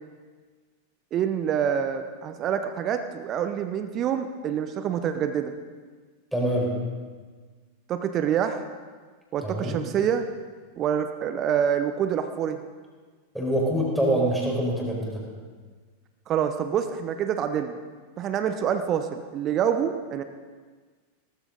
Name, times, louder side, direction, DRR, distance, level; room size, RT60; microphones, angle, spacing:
voice 1, 1.1-5.5 7.9-8.6 9.3-10.3 10.8-12.6 16.3-17.8 18.2-20.2, right 8 dB, 30° right, 9 dB, 0.8 m, -26 dB
voice 2, 6.3-6.7 9.4-9.8 13.3-15.2, right 1 dB, ahead, -3 dB, 4.8 m, -25 dB
18.5 x 14.0 x 4.0 m, 1.5 s
figure-of-eight pair, 90°, 0 cm